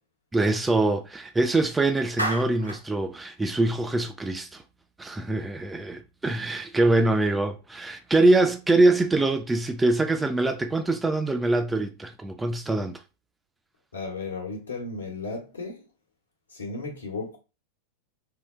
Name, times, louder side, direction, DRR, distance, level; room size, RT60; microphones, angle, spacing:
voice 1, 0.3-4.6 5.0-13.0, right 2 dB, 10° right, 0.4 m, -24 dB
Clapping, 2.2-2.9, right 1 dB, 85° right, 0.7 m, -30 dB
voice 2, 13.9-15.8 16.5-17.4, left 3 dB, 75° left, 1.2 m, -34 dB
3.9 x 2.2 x 3.1 m
figure-of-eight pair, 90°, 0 cm